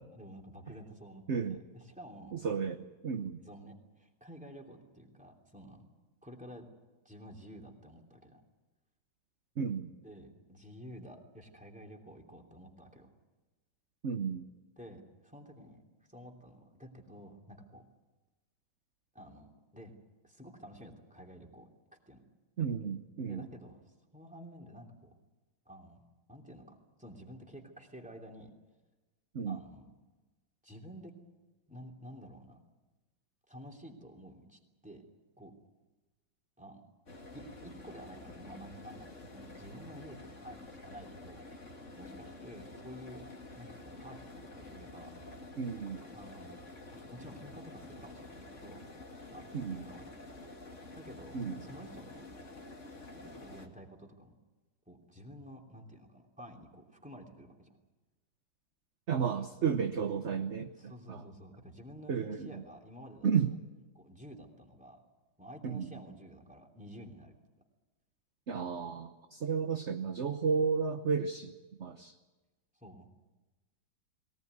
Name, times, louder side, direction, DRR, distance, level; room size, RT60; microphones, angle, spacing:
voice 1, 0.0-2.3 3.4-5.9 6.2-6.7 7.0-8.4 10.0-13.1 14.8-15.8 16.1-17.8 19.1-20.0 20.2-21.7 22.1-22.2 23.3-25.1 25.6-26.0 26.3-28.5 29.4-29.9 30.6-31.1 31.7-32.6 33.5-35.0 35.4-35.5 36.6-36.8 37.3-41.4 41.9-43.2 43.5-45.1 46.1-46.6 46.9-48.8 49.3-50.3 50.9-52.2 53.0-54.3 54.9-57.7 60.8-63.3 63.9-65.0 65.4-67.4 72.7-73.1, equal, 5° right, 1 dB, 3.0 m, -51 dB
voice 2, 1.3-1.6 2.3-3.4 9.6-9.9 14.0-14.5 22.6-23.5 29.3-29.6 45.6-46.0 49.5-49.8 51.3-51.7 59.1-61.2 62.1-62.6 63.2-63.5 65.6-65.9 68.5-71.5 71.8-72.1, right 6 dB, 45° right, 6 dB, 1.0 m, -33 dB
sound 1, 37.1-53.7, left 2 dB, 35° left, 2.5 m, -49 dB
22.0 x 19.0 x 9.5 m, 1.2 s
omnidirectional pair, 2.2 m